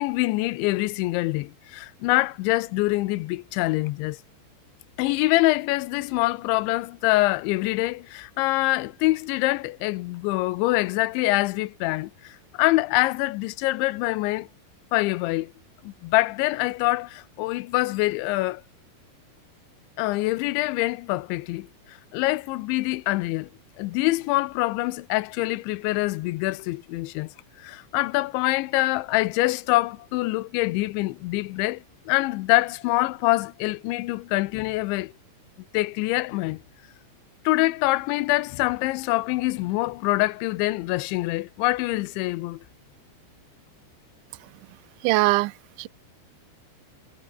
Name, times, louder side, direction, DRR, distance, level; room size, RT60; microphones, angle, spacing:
voice 1, 0.0-4.2 5.0-14.5 14.9-15.5 15.8-18.6 20.0-23.5 23.8-27.3 27.6-35.1 35.7-36.6 37.5-42.6, left 19 dB, 85° left, 3.1 m, -25 dB
voice 2, 45.0-45.5 45.8-45.9, right 21 dB, 90° right, 3.1 m, -20 dB
omnidirectional pair, 5.2 m